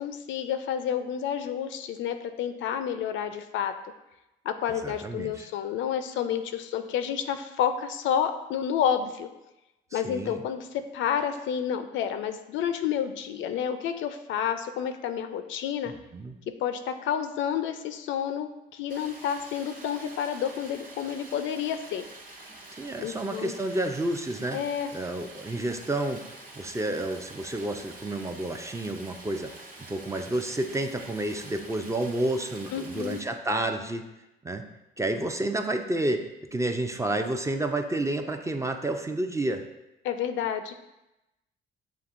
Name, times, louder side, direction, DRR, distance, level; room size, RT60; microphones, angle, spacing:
voice 1, 0.0-3.7 4.4-9.3 9.9-15.9 16.6-22.0 23.0-23.5 24.5-24.9 32.7-33.2 40.0-40.7, left 8 dB, 70° left, 8 dB, 0.4 m, -30 dB
voice 2, 4.8-5.5 9.9-10.4 16.1-16.4 22.8-24.6 24.9-26.2 26.6-29.5 29.9-34.0 34.4-34.6 35.0-39.6, right 1 dB, 15° right, 5 dB, 0.4 m, -30 dB
Stream, 18.9-33.2, right 2 dB, 45° right, 1.1 m, -47 dB
6.9 x 2.7 x 2.5 m, 0.94 s
supercardioid pair, 75°, 21 cm